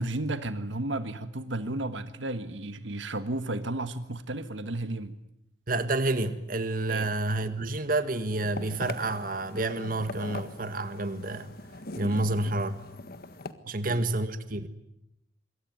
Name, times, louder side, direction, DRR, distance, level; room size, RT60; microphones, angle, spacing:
voice 1, 0.0-5.1 6.9-7.1 12.0-12.3 13.6-14.0, right 2 dB, 80° right, 1.5 m, -33 dB
voice 2, 5.7-11.5 12.0-12.8 13.7-14.7, right 2 dB, 50° right, 1.8 m, -29 dB
sound 1, 8.4-13.5, left 2 dB, 55° left, 1.7 m, -41 dB
26.5 x 23.0 x 9.5 m
head